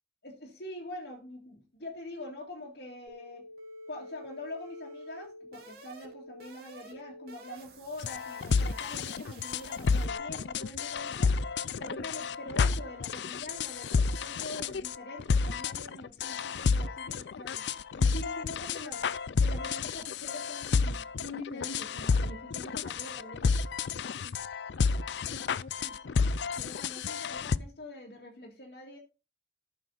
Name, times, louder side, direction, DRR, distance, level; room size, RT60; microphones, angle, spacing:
voice 1, 0.2-3.4 3.9-11.3 11.8-17.7 18.0-19.0 19.4-23.6 25.2-25.4 25.7-26.3 26.6-29.0, left 1 dB, 65° left, -2 dB, 2.2 m, -44 dB
sound 1, 3.1-10.1, equal, 60° right, 3.2 m, -49 dB
sound 2, 8.0-27.6, left 5 dB, 80° left, 0.4 m, -30 dB
13.0 x 6.8 x 3.9 m, 0.31 s
head